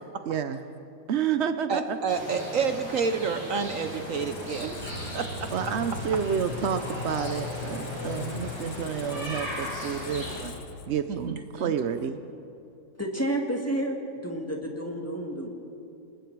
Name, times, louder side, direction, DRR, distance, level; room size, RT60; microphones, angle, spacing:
voice 1, 0.3-0.6 1.1-2.0 4.6-4.8 5.5-10.6 10.9-12.2, right 7 dB, 75° right, 9 dB, 0.6 m, -30 dB
voice 2, 1.7-4.7 5.1-5.5 11.1-11.7, right 5 dB, 55° right, 8 dB, 1.0 m, -29 dB
sound 1, 2.1-10.4, equal, 20° right, 6.6 m, -37 dB
Squeak, 3.6-11.3, left 7 dB, 85° left, 1.7 m, -40 dB
voice 3, 13.0-14.0 14.2-15.5, right 1 dB, 10° left, 1 dB, 1.8 m, -30 dB
29.0 x 19.5 x 4.7 m, 2.8 s
omnidirectional pair, 2.0 m